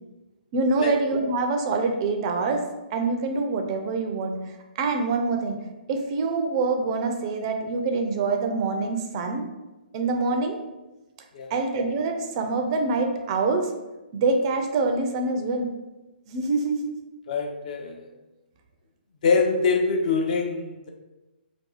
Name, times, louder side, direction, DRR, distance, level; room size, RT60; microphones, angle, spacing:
voice 1, 0.5-4.4 4.8-5.6 5.9-9.5 9.9-10.6 11.5-13.7 14.1-15.7 16.3-16.9, right 3 dB, 35° right, 4 dB, 0.4 m, -25 dB
voice 2, 17.3-18.1 19.2-20.9, left 4 dB, 45° left, 2 dB, 0.5 m, -24 dB
2.6 x 2.3 x 3.9 m, 1.1 s
figure-of-eight pair, 130°, 5 cm